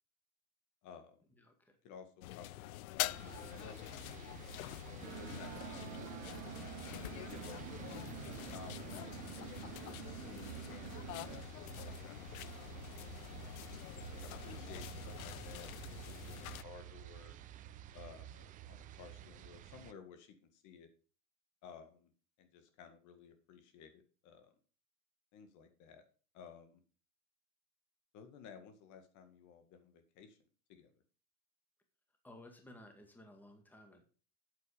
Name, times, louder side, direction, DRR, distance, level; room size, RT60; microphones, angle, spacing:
voice 1, 0.8-1.2 1.8-6.3 7.2-7.8 8.2-13.5 14.1-17.3 17.9-20.9 21.6-22.1 22.4-24.5 25.3-26.0 26.3-26.8 28.1-30.4 30.7-30.9, left 6 dB, 40° left, 8 dB, 1.9 m, -56 dB
voice 2, 1.4-1.8 32.2-34.0, left 1 dB, 5° left, 4 dB, 2.0 m, -56 dB
sound 1, 2.2-16.6, left 17 dB, 70° left, 0.5 m, -46 dB
sound 2, 3.0-19.9, right 13 dB, 20° right, 0.4 m, -51 dB
sound 3, 5.0-11.4, right 14 dB, 65° right, 1.1 m, -49 dB
8.6 x 7.7 x 5.1 m, 0.38 s
hypercardioid pair, 120°, 44 cm